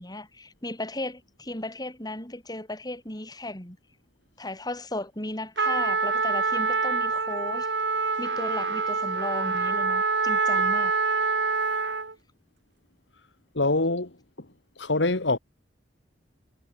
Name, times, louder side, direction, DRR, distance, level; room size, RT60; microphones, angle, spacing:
voice 1, 0.0-3.8 4.4-7.7 8.2-10.9, left 1 dB, 20° left, 6.8 m, -35 dB
Trumpet, 5.6-12.1, right 4 dB, 75° right, 5.7 m, -26 dB
voice 2, 13.6-14.1 14.8-15.4, left 2 dB, 80° left, 2.1 m, -24 dB
head